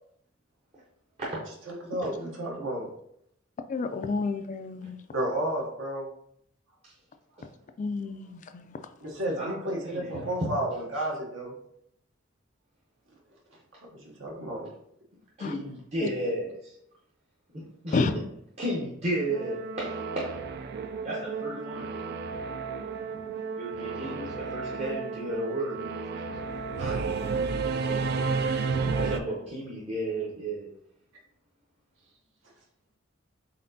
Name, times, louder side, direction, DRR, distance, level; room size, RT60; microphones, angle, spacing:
voice 1, 1.7-2.9 5.1-6.1 9.0-11.5 13.9-14.6, right 1 dB, 70° right, 1.0 m, -32 dB
voice 2, 3.7-5.0 7.8-8.8 15.4-15.6 16.0-16.1 17.9-18.1, left 4 dB, 40° left, 0.3 m, -30 dB
voice 3, 9.4-10.6 10.9-11.1 15.4-16.8 17.5-18.2 18.6-20.5 21.0-22.0 23.6-25.8 26.1-26.3 26.8-27.0 28.6-30.7, right 1 dB, 30° right, 0.7 m, -34 dB
Singing / Musical instrument, 19.3-29.2, right 4 dB, 55° right, 0.3 m, -32 dB
4.2 x 3.7 x 2.6 m
head